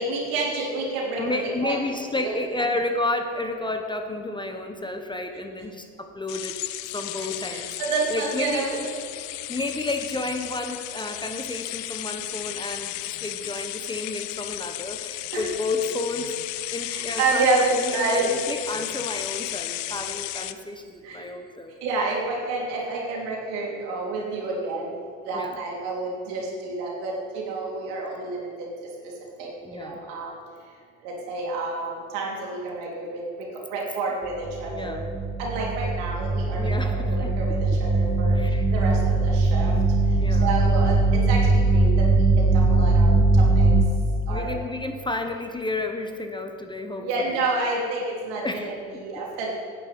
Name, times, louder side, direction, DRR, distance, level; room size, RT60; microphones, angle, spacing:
voice 1, 0.0-1.8 2.2-2.3 7.2-8.9 15.3-15.4 16.9-18.3 21.0-21.2 21.8-24.9 25.3-28.5 29.4-30.3 31.0-33.2 33.7-35.0 35.4-37.5 37.8-38.4 38.7-38.9 39.2-39.7 40.4-41.9 42.4-43.1 43.6-43.7 44.3-44.5 47.0-49.5, right 3 dB, 75° right, -2 dB, 3.4 m, -29 dB
voice 2, 1.2-6.6 6.9-7.7 8.1-8.9 9.3-16.4 16.7-21.8 25.3-25.6 29.6-30.0 34.6-35.1 36.5-37.6 38.3-38.7 39.4-39.5 40.2-40.5 44.3-47.4 48.4-49.0, left 2 dB, 10° left, 5 dB, 1.0 m, -31 dB
sound 1, 6.3-20.5, left 16 dB, 90° left, 0.6 m, -34 dB
sound 2, 34.4-43.8, right 2 dB, 10° right, 1.0 m, -20 dB
10.5 x 6.7 x 8.6 m, 2.2 s
supercardioid pair, 85°, 37 cm